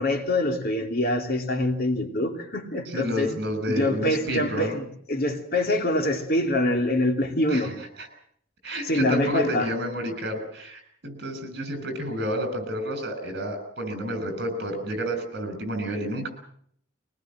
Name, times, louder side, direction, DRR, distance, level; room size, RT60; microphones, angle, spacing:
voice 1, 0.0-3.3 3.7-7.7 8.8-9.7, left 1 dB, 50° left, 5 dB, 2.7 m, -25 dB
voice 2, 2.9-4.7 7.5-7.7 8.0-8.1 8.6-16.3, equal, 55° right, 8 dB, 7.0 m, -30 dB
22.5 x 20.0 x 7.8 m, 0.66 s
head